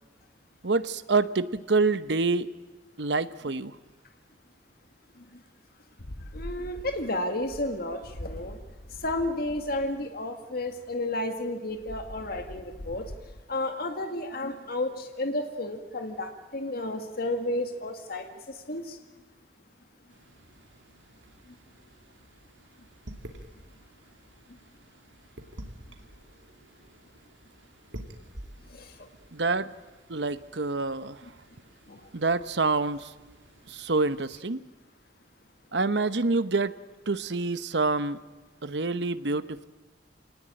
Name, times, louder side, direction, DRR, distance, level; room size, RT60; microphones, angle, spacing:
voice 1, 0.6-2.5 3.0-3.8 29.3-29.7 30.1-31.2 32.1-33.1 33.7-34.6 35.7-36.8 37.1-38.2 38.6-39.6, right 3 dB, 65° right, 14 dB, 1.0 m, -27 dB
sound 1, 6.0-9.9 11.7-13.4, left 1 dB, 75° left, 1.4 m, -43 dB
voice 2, 6.3-8.6 9.0-13.0 13.5-19.0 28.7-29.0 31.9-32.0, left 1 dB, 55° left, 6 dB, 1.9 m, -32 dB
sound 2, 20.1-34.3, right 1 dB, 85° right, 2.7 m, -50 dB
26.5 x 19.0 x 9.0 m, 1.3 s
head